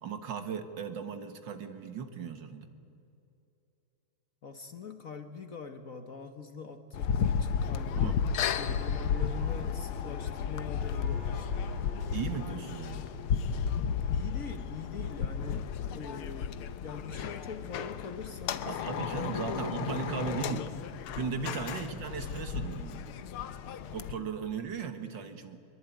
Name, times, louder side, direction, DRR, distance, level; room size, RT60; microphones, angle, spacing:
voice 1, 0.0-2.7 8.0-8.2 12.1-13.1 18.7-20.7 21.2-23.1 23.9-25.6, right 6 dB, 60° right, 8 dB, 2.1 m, -37 dB
voice 2, 4.4-8.1 8.5-11.5 14.1-20.8 24.2-24.3, left 5 dB, 45° left, 8 dB, 1.3 m, -43 dB
sound 1, 6.9-24.1, left 7 dB, 85° left, 1.8 m, -33 dB
sound 2, 8.2-15.6 16.0-16.3, right 3 dB, 35° right, 1.8 m, -54 dB
23.0 x 23.0 x 9.3 m, 2.7 s
omnidirectional pair, 2.3 m